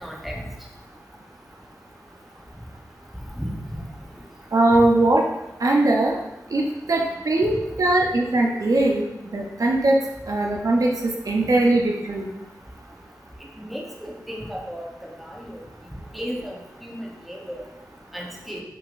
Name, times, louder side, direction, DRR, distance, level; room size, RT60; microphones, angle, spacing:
voice 1, 0.0-0.3 3.4-3.8 13.6-14.8 15.2-15.5 16.1-16.5 16.8-17.0 17.3-17.6 18.1-18.6, equal, ahead, -2 dB, 0.8 m, -34 dB
voice 2, 4.5-5.2 5.6-6.2 6.5-9.1 9.3-10.0 10.3-12.3, right 2 dB, 60° right, 0 dB, 0.6 m, -20 dB
5.9 x 3.7 x 2.5 m, 0.91 s
wide cardioid pair, 100°, 7 cm